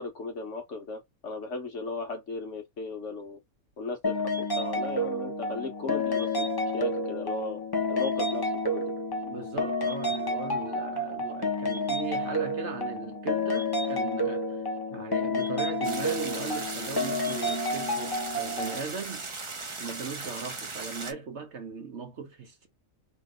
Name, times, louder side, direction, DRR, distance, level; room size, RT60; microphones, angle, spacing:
voice 1, 0.0-3.4 3.8-6.5 6.7-7.6 7.9-8.8, left 3 dB, 55° left, 1.3 m, -36 dB
sound 1, 4.0-18.8, left 1 dB, 25° left, 0.5 m, -30 dB
voice 2, 9.2-19.3 19.8-22.7, right 5 dB, 55° right, 1.0 m, -39 dB
sound 2, 15.8-21.1, right 3 dB, 30° right, 0.5 m, -38 dB
3.3 x 3.1 x 3.6 m
omnidirectional pair, 1.6 m